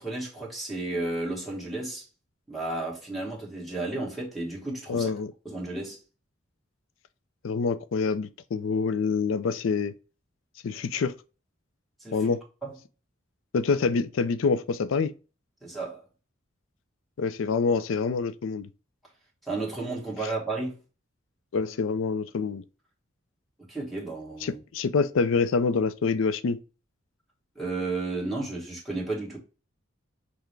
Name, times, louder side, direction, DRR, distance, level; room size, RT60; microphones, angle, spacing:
voice 1, 0.0-2.0 2.5-5.1 5.4-6.0 12.0-12.3 12.6-12.7 15.6-16.0 19.4-20.8 23.7-24.6 27.5-29.4, right 2 dB, ahead, 1.4 m, -33 dB
voice 2, 4.9-5.3 7.4-9.9 10.6-11.1 12.1-12.4 13.5-15.1 17.2-18.7 21.5-22.6 24.4-26.6, left 4 dB, 80° left, 0.4 m, -26 dB
5.8 x 2.1 x 3.3 m
head